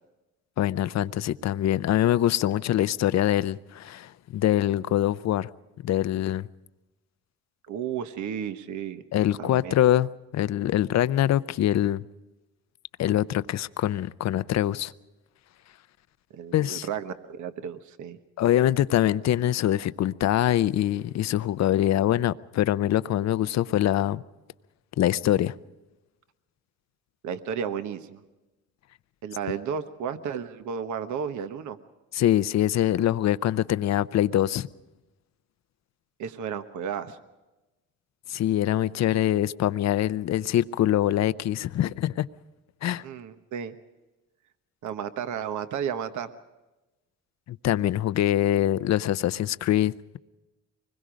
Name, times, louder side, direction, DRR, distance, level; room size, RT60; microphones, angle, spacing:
voice 1, 0.6-5.5 5.8-6.5 9.1-12.0 13.0-14.9 16.5-16.9 18.4-24.2 25.0-25.5 32.1-34.7 38.3-42.3 42.8-43.0 47.5-50.2, left 12 dB, 60° left, 0.7 m, -24 dB
voice 2, 7.7-9.0 9.4-9.7 16.3-18.2 27.2-28.2 29.2-31.8 36.2-37.2 43.0-43.7 44.8-46.3, right 7 dB, 75° right, 1.2 m, -33 dB
24.5 x 21.0 x 5.1 m
cardioid pair, 90°, 30 cm